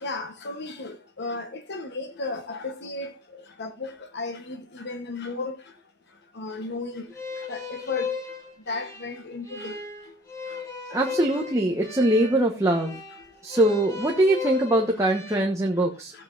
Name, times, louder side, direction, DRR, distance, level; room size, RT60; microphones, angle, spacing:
voice 1, 0.0-3.1 3.6-5.5 6.4-7.0 7.5-8.1 8.7-9.7, left 3 dB, 55° left, 1.0 m, -34 dB
sound 1, 7.1-15.4, left 5 dB, 15° left, 2.7 m, -36 dB
voice 2, 10.9-13.0 13.4-16.1, right 1 dB, 15° right, 1.1 m, -22 dB
15.5 x 8.0 x 2.5 m
head